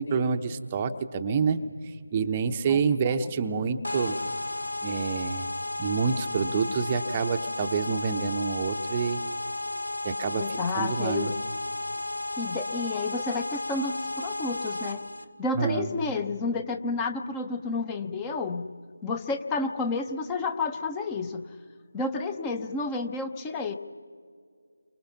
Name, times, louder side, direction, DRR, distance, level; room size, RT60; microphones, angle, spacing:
voice 1, 0.0-1.6 2.1-4.2 4.8-5.5 5.8-9.2 10.0-11.3 15.5-15.9, right 5 dB, 20° right, 7 dB, 0.9 m, -27 dB
sound 1, 3.8-15.3, left 2 dB, 80° left, 1.6 m, -33 dB
voice 2, 10.3-11.4 12.4-15.0 15.4-18.7 19.0-21.4 21.9-23.8, left 3 dB, 10° left, 7 dB, 0.9 m, -30 dB
30.0 x 25.0 x 5.9 m, 2.1 s
figure-of-eight pair, 160°, 0 cm